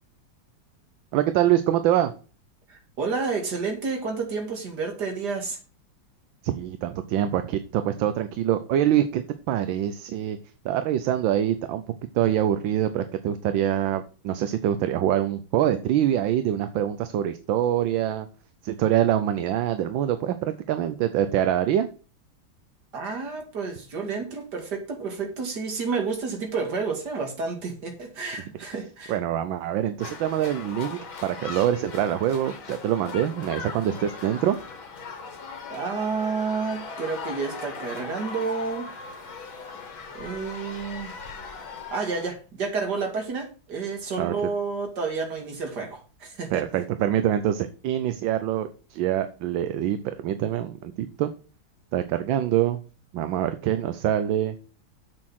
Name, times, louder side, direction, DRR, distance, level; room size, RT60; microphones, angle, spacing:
voice 1, 1.1-2.1 6.4-10.4 10.6-11.8 12.1-18.3 18.6-21.9 29.1-34.6 44.2-44.3 46.5-51.3 51.9-52.8 53.1-54.5, right 11 dB, 75° right, 1.4 m, -25 dB
voice 2, 2.7-5.6 22.9-29.2 35.7-38.9 40.1-41.1 41.9-46.8, right 4 dB, 55° right, 2.7 m, -30 dB
sound 1, 30.0-42.3, left 4 dB, 85° left, 2.5 m, -39 dB
7.5 x 6.4 x 6.0 m
omnidirectional pair, 2.1 m